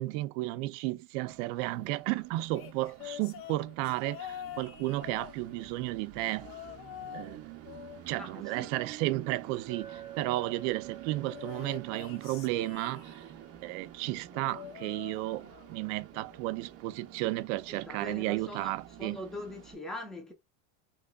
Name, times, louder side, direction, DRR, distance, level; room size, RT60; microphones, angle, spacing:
voice 1, 0.0-6.6 7.1-7.5 8.1-13.3 13.6-19.2, right 18 dB, 80° right, 0.5 m, -33 dB
Train, 1.3-19.8, right 11 dB, 40° right, 0.7 m, -50 dB
sound 1, 2.5-5.8 6.4-7.4 7.6-9.2 11.2-13.4 14.3-15.8 16.1-16.5 17.6-17.7, left 11 dB, 40° left, 0.4 m, -46 dB
voice 2, 8.2-8.7 17.7-20.3, left 1 dB, ahead, 0.7 m, -42 dB
Chink clink, 9.7-14.1, right 11 dB, 25° right, 2.0 m, -50 dB
3.7 x 3.0 x 2.2 m
cardioid pair, 140°, 36 cm